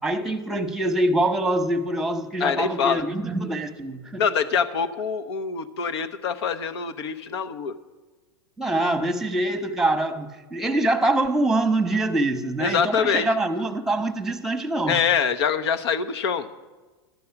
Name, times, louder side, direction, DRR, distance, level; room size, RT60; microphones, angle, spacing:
voice 1, 0.0-4.2 8.6-15.0, right 2 dB, 5° right, 1.0 m, -24 dB
voice 2, 2.4-3.0 4.2-7.7 12.6-13.3 14.9-16.5, left 6 dB, 75° left, 0.9 m, -24 dB
12.5 x 9.5 x 5.8 m
hypercardioid pair, 105°, 14 cm